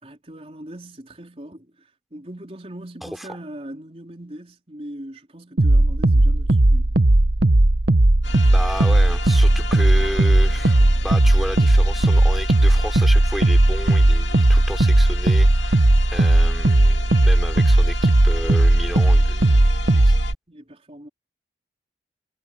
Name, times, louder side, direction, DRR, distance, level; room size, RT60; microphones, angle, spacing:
voice 1, 0.0-6.9 20.5-21.1, right 1 dB, 35° right, 4.3 m, -40 dB
sound 1, 5.6-20.3, right 1 dB, 70° right, 1.1 m, -16 dB
sound 2, 8.2-20.3, left 6 dB, 90° left, 2.5 m, -35 dB
voice 2, 8.5-15.8 16.1-20.2, equal, ahead, 5.4 m, -32 dB
head